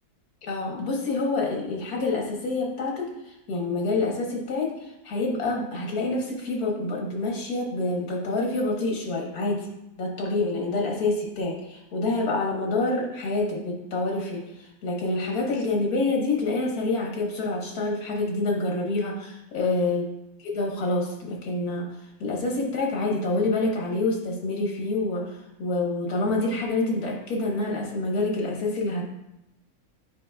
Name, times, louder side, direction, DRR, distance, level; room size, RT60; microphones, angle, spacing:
voice 1, 0.4-9.7 10.0-20.0 20.5-21.9 22.2-29.0, left 2 dB, 80° left, -1 dB, 1.8 m, -27 dB
9.1 x 4.6 x 2.3 m, 0.87 s
omnidirectional pair, 1.6 m